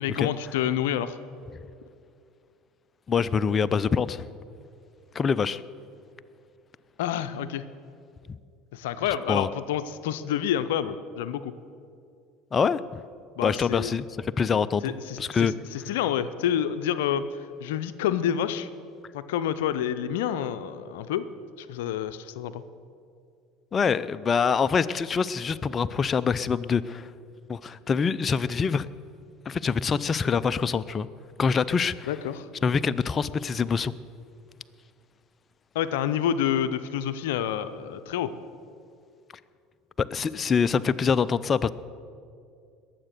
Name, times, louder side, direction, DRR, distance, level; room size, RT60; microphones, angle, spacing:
voice 1, 0.0-1.2 7.0-7.6 8.7-11.5 13.4-13.9 14.8-18.7 19.1-21.3 21.6-22.6 32.1-32.5 35.7-38.3, left 10 dB, 80° left, 12 dB, 0.6 m, -28 dB
voice 2, 3.1-4.3 5.1-5.6 8.3-8.4 9.3-9.5 12.5-13.0 13.4-15.5 23.7-27.1 27.5-28.9 29.5-31.1 31.4-32.1 32.6-33.9 40.0-41.7, left 6 dB, 35° left, 14 dB, 0.5 m, -25 dB
20.5 x 7.7 x 6.6 m, 2.4 s
hypercardioid pair, 80°, 0 cm